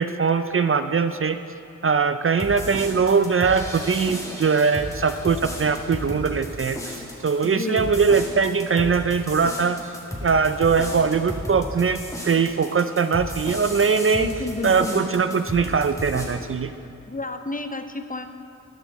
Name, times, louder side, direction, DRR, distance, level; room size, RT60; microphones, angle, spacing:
voice 1, 0.0-1.4 1.8-9.9 10.2-12.0 12.2-14.3 14.6-16.7, right 5 dB, 45° right, 10 dB, 0.4 m, -21 dB
sound 1, 2.4-16.3, equal, 10° left, 2.0 m, -34 dB
voice 2, 7.4-8.0 14.1-15.0 17.1-18.3, left 2 dB, 25° left, 7 dB, 0.6 m, -31 dB
14.0 x 8.0 x 4.1 m, 2.7 s
wide cardioid pair, 60°, 31 cm